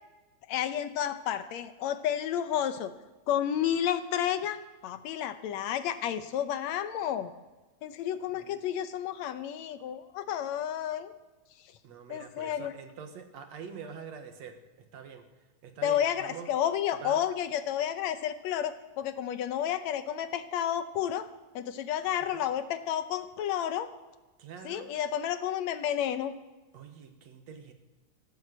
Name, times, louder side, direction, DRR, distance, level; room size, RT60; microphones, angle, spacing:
voice 1, 0.5-2.9 3.3-4.6 4.8-7.3 7.8-11.1 12.1-12.7 15.8-21.3 21.6-23.9 24.7-26.3, left 10 dB, 75° left, 11 dB, 1.9 m, -31 dB
voice 2, 11.8-15.3 15.6-16.5 16.9-17.2 24.4-24.9 26.7-27.7, right 6 dB, 65° right, 7 dB, 2.4 m, -45 dB
15.0 x 12.0 x 7.9 m, 1.2 s
omnidirectional pair, 3.4 m